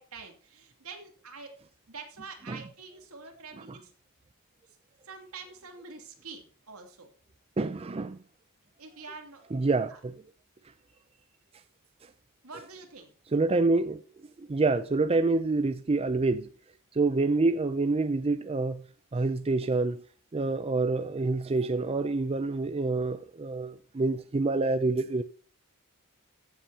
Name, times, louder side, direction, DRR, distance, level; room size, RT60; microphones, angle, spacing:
voice 1, 0.0-1.6 1.9-3.9 4.7-4.8 5.0-7.1 8.8-9.4 9.9-10.0 12.4-13.1 19.2-19.3, right 4 dB, 75° right, 2.8 m, -46 dB
voice 2, 7.6-8.2 9.5-10.1 13.3-14.0 14.4-16.5 16.9-18.8 19.1-20.0 20.3-25.2, right 3 dB, 25° right, 0.4 m, -27 dB
14.5 x 8.6 x 2.8 m
head